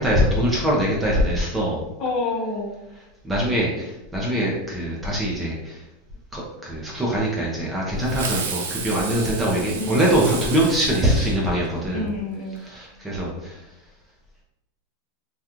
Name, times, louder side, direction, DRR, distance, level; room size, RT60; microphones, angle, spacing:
voice 1, 0.0-1.8 3.2-5.8 6.3-12.0 12.6-13.6, equal, 10° right, -4 dB, 0.5 m, -23 dB
voice 2, 2.0-2.8 9.8-10.3 11.9-12.6, left 2 dB, 30° left, -3 dB, 0.8 m, -28 dB
Fireworks, 8.0-11.9, right 5 dB, 85° right, 0.5 m, -32 dB
3.6 x 2.3 x 2.9 m, 0.93 s
supercardioid pair, 165°, 0 cm